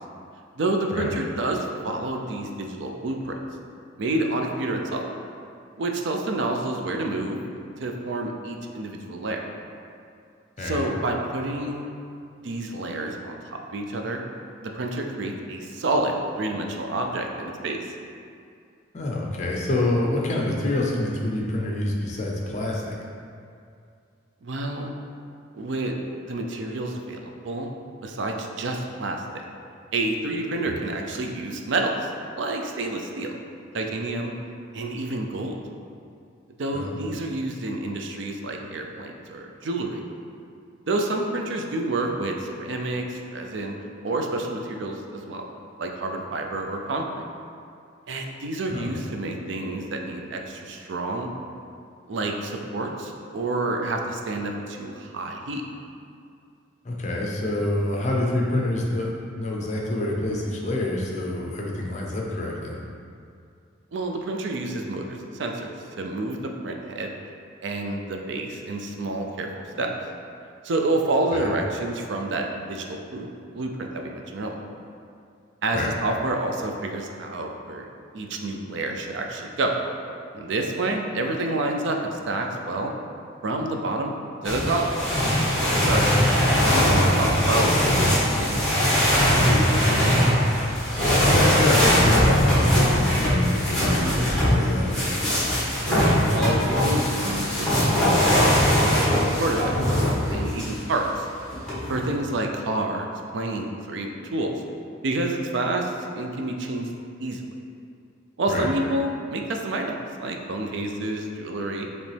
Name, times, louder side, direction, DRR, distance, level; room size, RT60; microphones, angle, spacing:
voice 1, 0.6-3.3 4.0-5.0 5.8-7.4 7.8-9.4 10.6-11.9 12.4-14.2 14.6-17.8 24.4-24.9 25.5-25.9 26.3-27.7 28.0-29.2 29.9-33.3 33.7-34.3 34.7-35.6 36.6-40.0 40.9-43.7 44.0-45.5 45.8-47.2 48.1-51.3 52.1-55.6 63.9-67.1 67.6-69.5 69.8-69.9 70.6-73.3 73.5-74.6 75.6-77.9 78.1-79.7 80.3-82.9 83.4-84.1 84.4-84.8 85.8-86.1 86.7-90.0 95.9-99.0 99.4-100.0 100.3-101.3 101.9-103.1 103.3-104.5 105.0-106.9 107.2-107.6 108.4-111.9, right 2 dB, 65° right, 2 dB, 0.4 m, -29 dB
voice 2, 18.9-23.0 30.7-30.8 36.7-37.0 48.7-48.9 56.8-62.8 71.3-71.5 75.7-75.9 85.9-86.1 91.3-95.0 108.5-108.7, left 1 dB, 35° left, -2 dB, 0.6 m, -27 dB
sound 1, 84.4-100.8 101.5-102.2, equal, 5° left, 1.2 m, -21 dB
5.2 x 3.1 x 3.3 m, 2.4 s
head